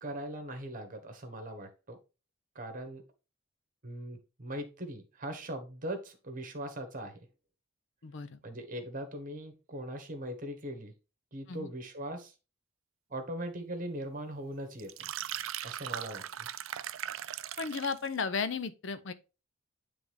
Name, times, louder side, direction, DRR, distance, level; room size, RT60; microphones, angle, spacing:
voice 1, 0.0-2.0 2.5-3.0 3.8-7.3 8.4-10.9 11.3-12.3 13.1-15.1 15.6-16.5, right 1 dB, 45° right, 1.3 m, -40 dB
voice 2, 8.0-8.4 11.5-11.7 17.6-19.1, left 5 dB, 65° left, 0.6 m, -34 dB
sound 1, 14.8-18.1, right 11 dB, 75° right, 0.4 m, -39 dB
9.3 x 3.4 x 3.4 m
head